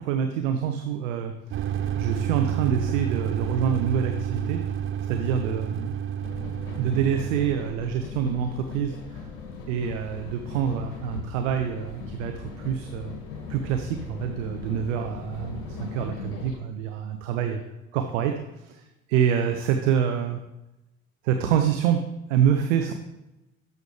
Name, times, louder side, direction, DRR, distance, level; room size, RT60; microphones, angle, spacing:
voice 1, 0.0-1.3 1.9-4.6 5.1-5.9 6.8-9.3 9.7-13.2 13.5-17.6 17.9-20.4 21.2-22.9, right 8 dB, 65° right, 6 dB, 0.8 m, -26 dB
sound 1, 1.5-7.5, right 9 dB, 30° right, 0.6 m, -29 dB
sound 2, 6.2-16.6, left 4 dB, 65° left, 1.8 m, -39 dB
12.0 x 7.0 x 3.2 m, 0.97 s
figure-of-eight pair, 60°, 41 cm